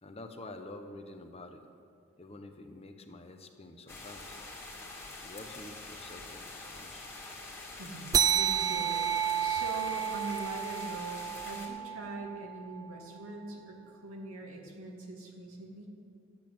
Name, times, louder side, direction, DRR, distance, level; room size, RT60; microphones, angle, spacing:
voice 1, 0.0-1.7 2.1-4.4 5.2-7.1, left 2 dB, 30° left, 6 dB, 0.9 m, -48 dB
sound 1, 3.9-11.7, left 2 dB, 15° left, 2.2 m, -45 dB
voice 2, 7.8-15.9, right 2 dB, 85° right, 0 dB, 2.5 m, -42 dB
sound 2, 8.1-13.1, right 9 dB, 15° right, 0.3 m, -31 dB
12.5 x 8.2 x 8.9 m, 2.2 s
head